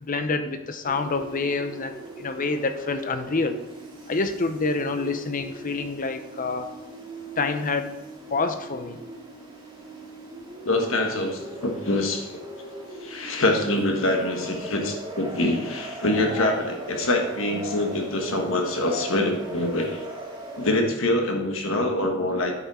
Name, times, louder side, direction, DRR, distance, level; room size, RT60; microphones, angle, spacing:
voice 1, 0.0-3.6 4.1-6.7 7.4-7.9 8.3-9.0, left 3 dB, 40° left, 9 dB, 0.7 m, -27 dB
sound 1, 0.8-20.8, right 1 dB, 25° right, 1.8 m, -39 dB
voice 2, 10.6-12.4 13.0-20.0 20.6-22.5, left 1 dB, 70° left, 3 dB, 1.4 m, -25 dB
9.5 x 5.5 x 4.9 m, 0.99 s
head